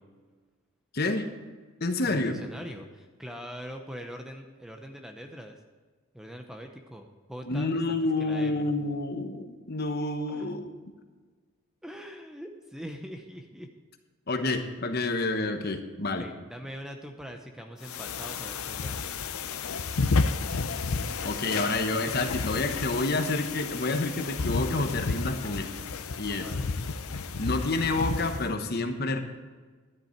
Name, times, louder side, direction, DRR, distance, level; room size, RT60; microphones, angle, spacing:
voice 1, 0.9-1.3 1.8-2.4 7.5-10.7 14.3-16.3 21.2-25.7 26.2-26.5 27.4-29.2, left 2 dB, 45° left, 6 dB, 1.1 m, -29 dB
voice 2, 2.0-5.6 6.1-8.7 10.2-10.5 11.8-13.7 16.2-19.2 26.4-26.8, equal, 5° right, 4 dB, 0.7 m, -43 dB
sound 1, 17.8-28.5, left 4 dB, 85° left, 0.7 m, -31 dB
12.0 x 10.5 x 4.5 m, 1.4 s
head